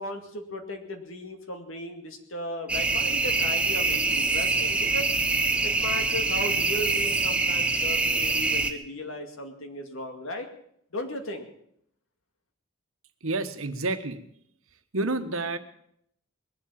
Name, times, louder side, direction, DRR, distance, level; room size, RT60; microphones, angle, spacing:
voice 1, 0.0-5.1 5.6-10.5 10.9-11.5, left 1 dB, 80° left, 5 dB, 2.3 m, -36 dB
sound 1, 2.7-8.7, right 3 dB, 5° right, 0.9 m, -25 dB
voice 2, 13.2-14.2 14.9-15.6, right 2 dB, 85° right, 9 dB, 1.3 m, -29 dB
20.5 x 7.7 x 8.6 m, 0.72 s
head